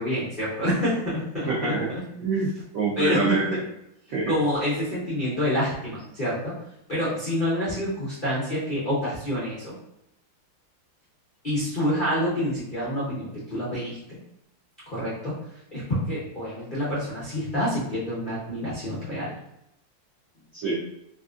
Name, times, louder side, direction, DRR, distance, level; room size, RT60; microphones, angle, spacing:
voice 1, 0.0-2.0 3.0-3.4 4.1-6.5 6.9-9.8 11.4-14.2 14.9-15.3 15.7-19.4, equal, 80° left, -9 dB, 0.4 m, -27 dB
voice 2, 1.5-1.9 2.2-3.6 4.1-4.3 20.5-20.8, right 3 dB, 85° right, -6 dB, 0.7 m, -26 dB
3.4 x 2.5 x 2.4 m, 0.82 s
omnidirectional pair, 2.3 m